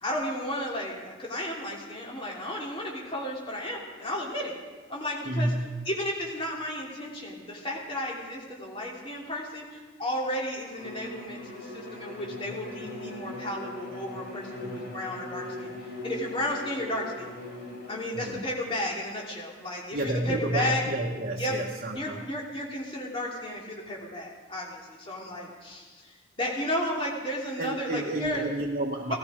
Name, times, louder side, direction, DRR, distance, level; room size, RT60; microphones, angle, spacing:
voice 1, 0.0-4.5 4.9-5.5 5.9-9.6 10.0-15.7 16.0-17.3 17.9-20.8 21.4-21.5 21.9-25.9 26.4-28.4, left 1 dB, 25° left, -3 dB, 3.0 m, -33 dB
voice 2, 5.2-5.7 18.1-18.4 19.9-22.3 27.6-29.1, right 1 dB, 45° right, 0 dB, 1.2 m, -30 dB
Bowed string instrument, 10.7-18.1, left 2 dB, 50° left, 6.2 m, -40 dB
18.0 x 14.0 x 5.1 m, 1.3 s
head